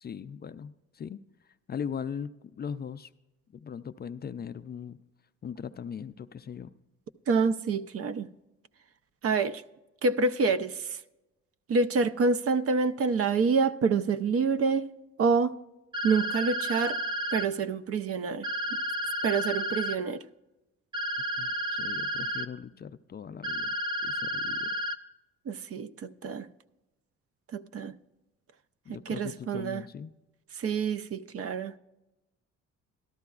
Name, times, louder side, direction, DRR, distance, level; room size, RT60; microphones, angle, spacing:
voice 1, 0.0-1.2 1.7-3.1 3.6-5.0 5.4-6.7 21.4-23.7 24.0-24.7 28.9-30.1, left 7 dB, 35° left, 0.4 m, -39 dB
voice 2, 7.3-8.3 9.2-9.6 10.0-11.0 11.7-14.9 15.2-15.5 16.0-17.0 17.3-18.5 19.2-20.2 25.5-26.5 27.5-27.9 29.1-29.8 30.5-31.7, right 4 dB, 50° right, 0.5 m, -27 dB
sound 1, 15.9-17.5 18.4-20.0 20.9-22.5 23.4-25.0, right 1 dB, 15° right, 0.7 m, -31 dB
14.0 x 12.0 x 2.4 m
cardioid pair, 90°, 30 cm